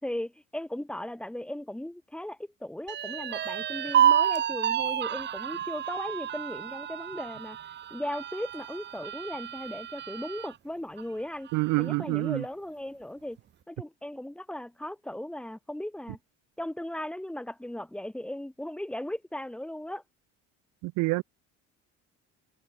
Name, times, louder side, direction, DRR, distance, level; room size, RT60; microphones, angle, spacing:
voice 1, 0.0-7.6 7.9-11.5 11.8-13.4 13.7-16.2 16.6-20.0, left 1 dB, 5° left, 5.3 m, -37 dB
sound 1, 2.9-10.5 11.0-11.1 11.5-12.1, right 10 dB, 35° right, 2.0 m, -29 dB
voice 2, 11.5-12.4 20.8-21.2, right 24 dB, 85° right, 1.2 m, -27 dB
cardioid pair, 155°, 29 cm